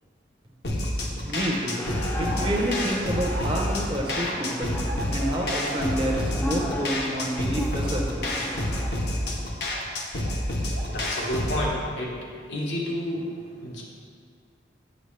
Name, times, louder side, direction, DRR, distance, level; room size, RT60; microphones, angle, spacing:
sound 1, 0.6-11.7, left 1 dB, 60° left, 0.9 m, -29 dB
sound 2, 1.0-1.3 1.9-6.3 6.6-7.3 7.8-8.0 8.8-10.4 10.7-11.5, equal, 80° right, 1.0 m, -39 dB
voice 1, 1.2-1.8 2.2-4.8 5.1-8.4, equal, 30° right, 0 dB, 0.8 m, -28 dB
sound 3, 1.8-8.9, equal, 15° left, 0.6 m, -37 dB
voice 2, 10.9-13.8, left 1 dB, 80° left, -4 dB, 1.5 m, -30 dB
8.0 x 5.8 x 3.3 m, 2.1 s
head